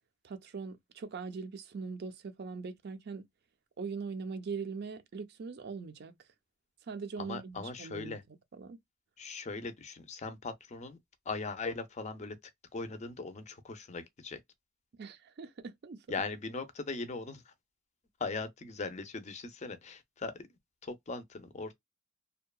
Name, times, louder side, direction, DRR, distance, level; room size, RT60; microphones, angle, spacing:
voice 1, 0.2-3.2 3.8-6.2 6.9-8.2 8.6-8.8 15.0-16.1, right 5 dB, 50° right, 0.5 m, -41 dB
voice 2, 7.2-8.2 9.2-11.0 11.3-12.4 12.7-14.4 16.1-17.5 18.2-20.5 20.8-21.7, left 3 dB, 35° left, 0.5 m, -39 dB
2.7 x 2.2 x 2.2 m
head